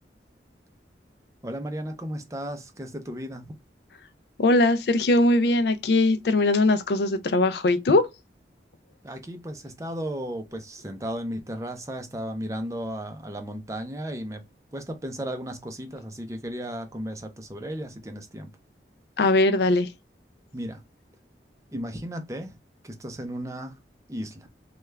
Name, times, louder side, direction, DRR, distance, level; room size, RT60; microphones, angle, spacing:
voice 1, 1.4-3.5 9.0-14.4 14.7-18.5 20.5-20.8 21.7-22.5 22.8-23.8 24.1-24.5, equal, 15° right, 0.5 m, -35 dB
voice 2, 4.4-8.0 19.2-19.9, left 2 dB, 70° left, 0.4 m, -20 dB
3.3 x 2.3 x 3.2 m
head